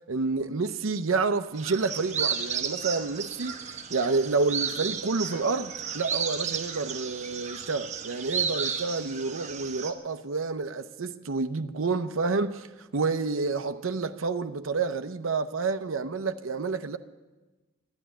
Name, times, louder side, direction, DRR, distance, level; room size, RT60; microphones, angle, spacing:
voice 1, 0.1-17.0, right 4 dB, 75° right, 0.7 m, -29 dB
sound 1, 1.6-9.9, right 7 dB, 35° right, 1.1 m, -33 dB
12.5 x 10.5 x 10.0 m
head